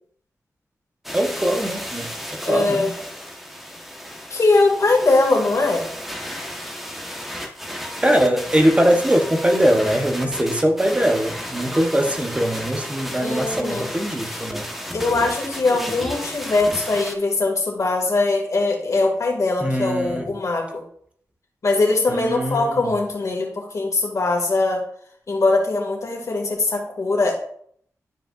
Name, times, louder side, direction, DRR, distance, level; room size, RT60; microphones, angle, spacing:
sound 1, 1.0-17.1, equal, 5° right, 1.2 m, -33 dB
voice 1, 1.1-2.9 8.0-14.7 19.6-20.3 22.1-22.9, equal, 20° right, 3 dB, 1.0 m, -21 dB
voice 2, 2.4-2.9 4.3-5.9 13.2-13.9 14.9-20.8 21.6-24.8 25.3-27.4, left 3 dB, 60° left, 1 dB, 2.2 m, -21 dB
12.0 x 4.9 x 2.5 m, 0.62 s
cardioid pair, 70°, 6 cm